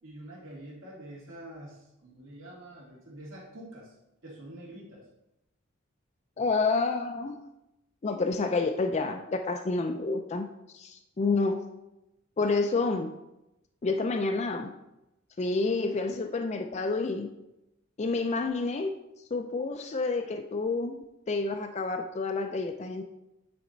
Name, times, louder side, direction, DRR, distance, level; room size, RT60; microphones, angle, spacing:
voice 1, 0.0-3.9 4.2-5.0 6.4-6.5, right 1 dB, 75° right, -4 dB, 2.3 m, -46 dB
voice 2, 6.4-7.4 8.0-10.5 10.7-11.6 12.4-13.1 13.8-14.7 15.4-17.3 18.0-19.0 19.3-23.0, left 3 dB, 35° left, 6 dB, 0.4 m, -29 dB
9.0 x 4.3 x 3.9 m, 0.91 s
head